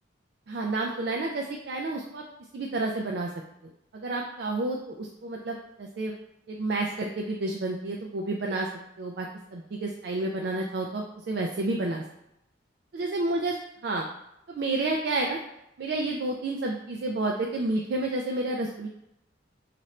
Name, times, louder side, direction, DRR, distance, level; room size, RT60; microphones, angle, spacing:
voice 1, 0.5-2.2 2.5-3.3 3.9-6.1 6.5-8.7 9.0-12.0 12.9-13.5 13.8-14.1 14.5-15.4 15.8-18.9, right 2 dB, 55° right, 0 dB, 0.4 m, -30 dB
3.1 x 2.5 x 4.1 m, 0.83 s
head